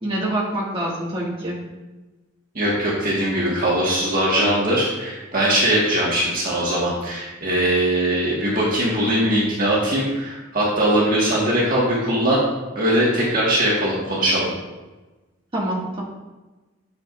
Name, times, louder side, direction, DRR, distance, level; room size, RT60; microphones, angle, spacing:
voice 1, 0.0-1.6 15.5-16.0, right 1 dB, 25° right, -6 dB, 2.0 m, -25 dB
voice 2, 2.6-12.4 12.8-14.5, right 1 dB, 40° right, -6 dB, 1.8 m, -20 dB
11.0 x 7.2 x 2.6 m, 1.2 s
head